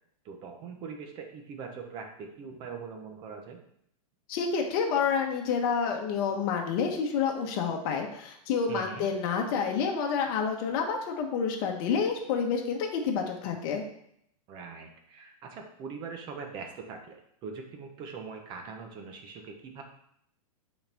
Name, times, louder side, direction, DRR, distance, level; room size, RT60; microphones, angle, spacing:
voice 1, 0.2-3.6 8.7-9.1 14.5-19.8, right 5 dB, 25° right, 3 dB, 0.9 m, -42 dB
voice 2, 4.3-13.8, left 6 dB, 35° left, 2 dB, 1.2 m, -29 dB
8.5 x 4.4 x 3.5 m, 0.72 s
supercardioid pair, 165°, 19 cm